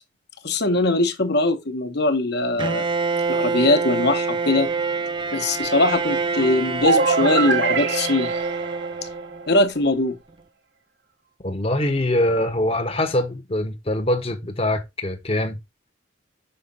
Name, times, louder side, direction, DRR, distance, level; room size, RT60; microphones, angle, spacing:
voice 1, 0.4-2.9 3.3-4.7 5.3-8.3 9.5-10.2, left 2 dB, 60° left, 1.2 m, -21 dB
Bowed string instrument, 2.6-9.5, right 4 dB, 25° right, 0.5 m, -26 dB
sound 1, 6.8-9.6, right 5 dB, 65° right, 0.8 m, -24 dB
voice 2, 11.4-15.6, left 1 dB, 30° left, 1.0 m, -23 dB
6.7 x 4.8 x 4.0 m
head